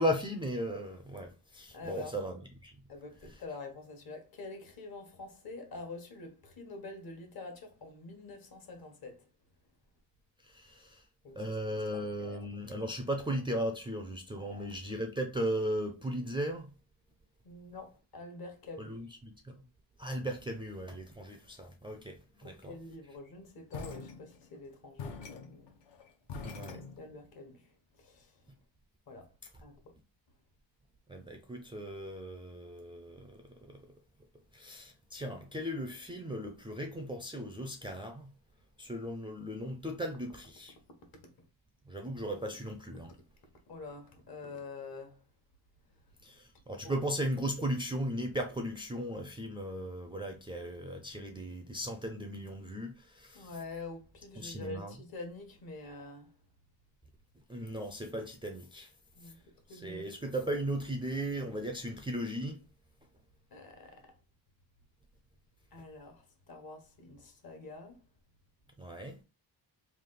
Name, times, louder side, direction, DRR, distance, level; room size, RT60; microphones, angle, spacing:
voice 1, 0.0-2.7 10.4-11.0 11.4-16.7 18.8-19.6 20.0-22.7 26.4-26.8 31.1-33.9 34.5-38.3 38.8-40.7 41.9-43.1 46.2-53.5 54.4-54.9 57.5-58.9 59.2-59.3 59.7-62.7 68.8-69.2, equal, 10° right, 0.4 m, -37 dB
voice 2, 1.7-2.1 2.9-9.3 11.2-12.8 14.4-14.7 17.4-19.0 22.4-25.7 26.5-28.4 29.1-29.3 29.6-30.0 43.7-45.2 46.8-47.0 53.3-56.3 59.1-59.4 59.7-60.2 63.5-64.1 65.7-68.0, left 3 dB, 55° left, 1.2 m, -47 dB
sound 1, 23.7-24.6 25.0-27.4, left 5 dB, 70° left, 0.9 m, -44 dB
3.4 x 2.4 x 3.8 m
cardioid pair, 115°, 44 cm